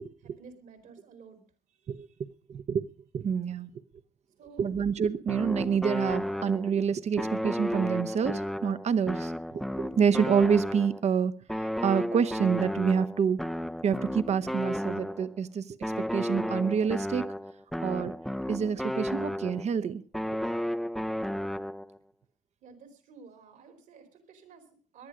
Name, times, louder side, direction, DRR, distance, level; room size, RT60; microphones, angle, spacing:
voice 1, 0.2-1.4 1.7-2.2 4.4-4.7 22.6-25.1, right 5 dB, 70° right, 9 dB, 3.4 m, -52 dB
voice 2, 2.5-2.9 3.1-3.7 4.6-11.3 11.6-13.4 13.8-17.2 17.8-18.2 18.5-20.0, right 7 dB, 50° right, 14 dB, 0.9 m, -27 dB
sound 1, 5.3-6.8 7.2-11.1 11.5-15.4 15.8-19.8 20.1-22.0, equal, ahead, 0.6 m, -33 dB
18.5 x 11.5 x 5.0 m, 0.43 s
supercardioid pair, 70°, 14 cm